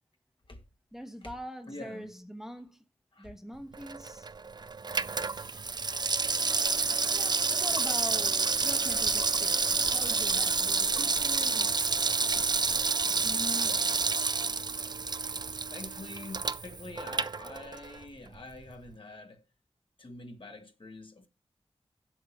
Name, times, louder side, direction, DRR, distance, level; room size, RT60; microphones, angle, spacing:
voice 1, 0.9-2.8 3.2-4.3 7.1-12.0, equal, 5° right, 1.1 m, -44 dB
voice 2, 1.7-2.1 3.1-3.3 5.3-5.6 12.1-12.8 13.2-14.3 14.8-19.5 20.0-21.3, left 2 dB, 50° left, 1.5 m, -46 dB
Water tap faucet / Sink (filling or washing), 3.7-18.0 18.3-18.4, right 4 dB, 40° right, 0.4 m, -29 dB
Organ, 6.1-17.0, right 6 dB, 55° right, 2.4 m, -51 dB
7.9 x 5.4 x 7.1 m
wide cardioid pair, 65°, 11 cm